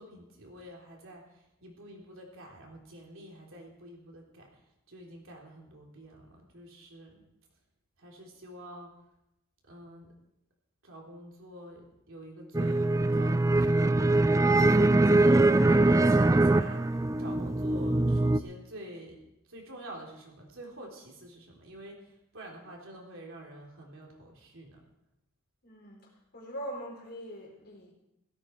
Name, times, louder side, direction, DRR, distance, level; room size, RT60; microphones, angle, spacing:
voice 1, 0.0-4.6 4.9-7.2 8.0-9.0 9.7-10.1 10.8-19.2 19.5-24.8, right 1 dB, 70° right, 0 dB, 3.6 m, -47 dB
sound 1, 12.5-18.4, right 2 dB, 15° right, 0.4 m, -23 dB
voice 2, 25.6-27.9, right 1 dB, 50° left, 0 dB, 4.0 m, -42 dB
16.5 x 14.0 x 4.7 m, 0.86 s
head